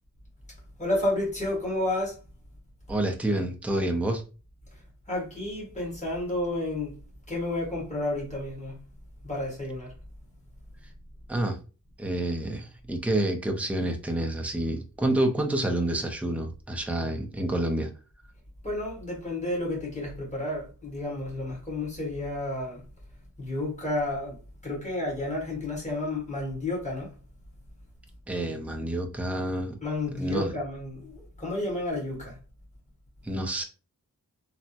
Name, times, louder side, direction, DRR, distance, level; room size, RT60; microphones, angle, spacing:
voice 1, 0.8-2.2 4.7-6.9 7.3-8.8 9.2-9.9 18.6-22.8 23.4-24.4 24.6-27.1 29.8-32.4, left 1 dB, 20° left, 1.5 m, -31 dB
voice 2, 2.9-4.2 11.3-11.6 12.0-17.9 28.3-29.8 30.2-30.5 33.2-33.6, right 1 dB, 5° right, 0.5 m, -28 dB
3.2 x 2.0 x 2.7 m
wide cardioid pair, 100°, 34 cm